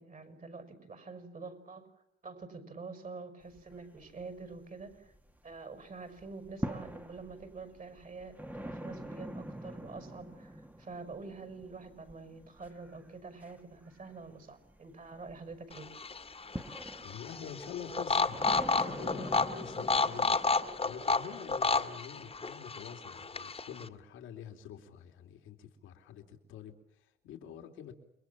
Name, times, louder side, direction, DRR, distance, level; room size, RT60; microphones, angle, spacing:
voice 1, 0.0-1.9 2.2-5.1 5.4-15.9, right 4 dB, 40° right, 8 dB, 6.2 m, -46 dB
sound 1, 3.4-5.6 5.9-20.8, right 1 dB, 10° right, 1.6 m, -45 dB
sound 2, 15.7-23.9, left 4 dB, 30° left, 1.9 m, -32 dB
voice 2, 17.0-18.5 18.8-20.3 20.8-27.9, left 8 dB, 90° left, 5 dB, 2.9 m, -46 dB
29.5 x 22.5 x 7.4 m, 0.83 s
cardioid pair, 90°, 20 cm